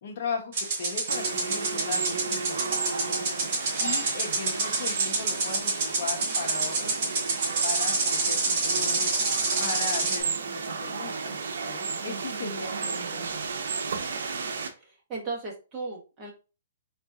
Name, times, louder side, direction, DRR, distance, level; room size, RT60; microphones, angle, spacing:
voice 1, 0.0-2.6 3.0-3.2 3.8-7.3 7.6-13.4, left 5 dB, 45° left, 0.9 m, -38 dB
sound 1, 0.5-10.2, right 3 dB, 35° right, 2.1 m, -28 dB
sound 2, 1.1-14.7, right 5 dB, 70° right, 0.7 m, -33 dB
voice 2, 14.7-16.3, right 3 dB, 20° right, 1.2 m, -36 dB
3.9 x 2.6 x 3.5 m
hypercardioid pair, 165°, 0 cm